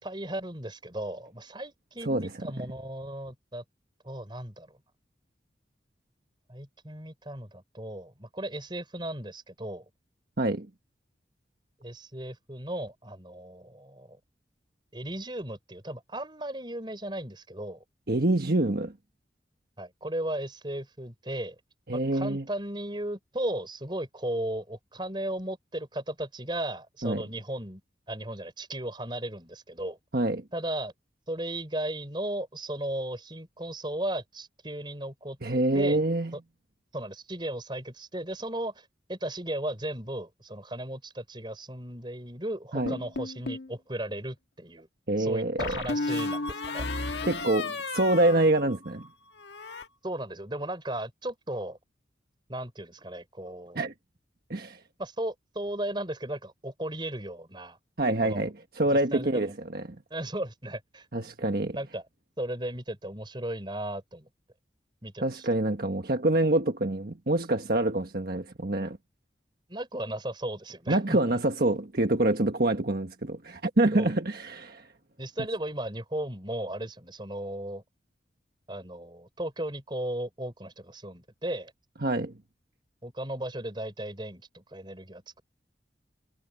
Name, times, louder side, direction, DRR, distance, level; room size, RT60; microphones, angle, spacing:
voice 1, 0.0-3.6 4.0-4.8 6.5-9.8 11.8-14.2 14.9-17.8 19.8-21.5 21.9-27.8 28.1-30.0 30.5-30.9 31.3-35.4 35.7-36.0 36.3-36.4 36.9-44.9 45.2-46.8 50.0-51.8 52.5-53.9 55.0-57.8 58.2-58.5 58.9-59.5 60.1-61.1 61.7-62.0 62.4-64.3 65.0-65.5 69.7-71.2 73.9-74.1 75.2-77.8 78.7-81.7 83.0-85.4, right 1 dB, 25° right, 5.1 m, -36 dB
voice 2, 18.1-18.9 21.9-22.4 27.0-27.2 30.1-30.4 35.4-36.3 42.7-42.9 45.1-45.8 47.2-49.1 53.7-53.9 54.5-54.8 58.0-60.0 61.1-61.8 65.2-69.0 70.9-74.9 82.0-82.3, right 2 dB, 55° right, 1.4 m, -26 dB
sound 1, 42.9-43.7 45.6-49.1 49.4-49.9, left 3 dB, 75° left, 1.6 m, -33 dB
head